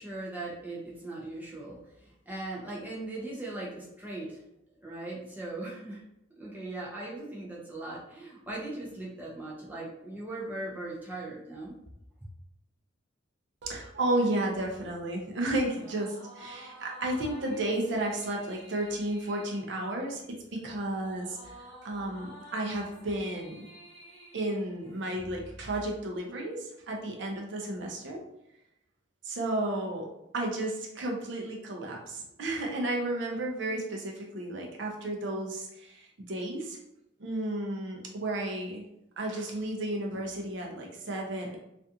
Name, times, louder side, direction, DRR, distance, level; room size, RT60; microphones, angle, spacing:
voice 1, 0.0-4.4 4.8-6.0 6.4-11.7, right 2 dB, 10° right, -5 dB, 0.5 m, -39 dB
voice 2, 13.6-21.6 21.8-23.7 24.3-28.2 29.2-30.1 30.3-36.8 37.2-38.8 39.2-41.6, right 1 dB, 60° right, 0 dB, 0.5 m, -33 dB
sound 1, 15.6-25.3, equal, 30° left, 0.9 m, -51 dB
2.5 x 2.3 x 2.7 m, 0.83 s
head